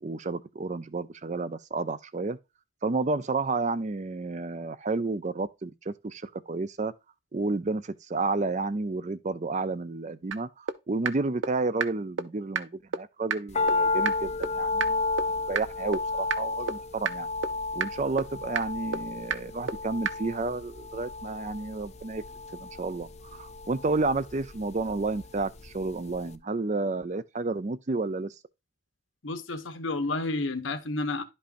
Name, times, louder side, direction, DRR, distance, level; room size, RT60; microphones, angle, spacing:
voice 1, 0.0-2.4 2.8-6.9 7.3-15.0 15.5-17.3 17.7-22.2 22.6-28.3, right 3 dB, 40° right, 0.5 m, -31 dB
sound 1, 10.3-10.4 10.7-10.8 11.0-11.1 11.4-11.5 11.8-11.9 12.2-12.3 12.5-12.6 12.9-13.0 13.3-13.4 13.7-13.8 14.0-14.1 14.4-14.5 14.8-14.9 15.2-15.3 15.5-15.6 15.9-16.0 16.3-16.4 16.7-16.8 17.0-17.1 17.4-17.5 17.8-17.9 18.2-18.3 18.5-18.6 18.9-19.0 19.3-19.4 19.7-19.8 20.0-20.1, right 6 dB, 80° right, 0.6 m, -27 dB
sound 2, 13.5-25.8 26.1-26.2, left 3 dB, 35° left, 0.5 m, -32 dB
voice 2, 29.2-31.2, left 2 dB, 90° left, 1.2 m, -30 dB
11.5 x 5.4 x 2.6 m
head